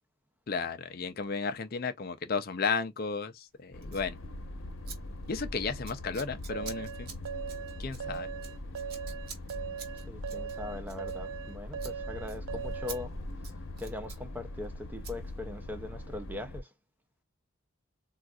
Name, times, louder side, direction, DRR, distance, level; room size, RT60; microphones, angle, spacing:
voice 1, 0.5-4.2 5.3-7.1 7.8-8.3, left 5 dB, 45° left, 0.4 m, -33 dB
sound 1, 3.7-16.6, left 1 dB, 70° left, 0.8 m, -42 dB
Scissors, 3.8-4.1 4.9-5.0 5.2-5.5 5.8-11.5 11.8-12.0 12.3-12.4 12.9-13.0 13.3-14.2 15.0-15.2, right 6 dB, 45° right, 1.1 m, -47 dB
sound 2, 6.5-13.1, right 7 dB, 70° right, 0.4 m, -40 dB
voice 2, 10.1-13.1 13.8-16.7, left 2 dB, 10° right, 0.5 m, -41 dB
3.8 x 2.4 x 2.3 m
head